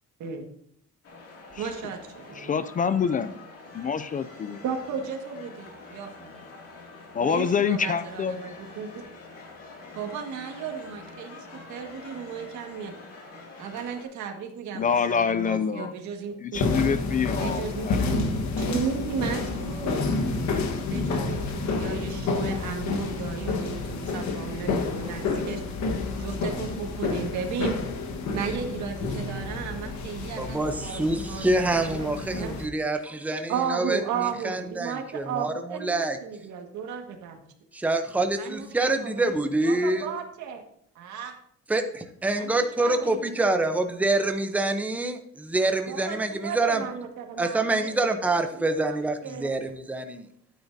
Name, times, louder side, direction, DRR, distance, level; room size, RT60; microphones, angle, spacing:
sound 1, 1.0-14.0, left 3 dB, 55° left, 2.4 m, -46 dB
voice 1, 1.6-2.5 4.6-6.3 7.2-9.1 10.0-12.9 13.6-16.6 17.4-20.2 20.9-25.6 26.2-27.8 28.3-32.6 33.5-37.4 38.3-40.6 41.0-41.4 42.3-43.3 45.9-46.2 46.4-49.5, right 6 dB, 80° right, 4 dB, 1.8 m, -35 dB
voice 2, 2.4-3.3 3.7-4.6 7.1-8.6 14.7-16.0 16.4-18.2, left 6 dB, 30° left, 13 dB, 0.3 m, -26 dB
sound 2, 16.5-32.7, left 3 dB, 70° left, 1.4 m, -29 dB
voice 3, 30.4-36.2 37.7-40.1 41.7-46.8 47.4-50.2, right 2 dB, 5° right, 6 dB, 0.7 m, -26 dB
12.5 x 9.2 x 2.7 m, 0.68 s
cardioid pair, 155°, 29 cm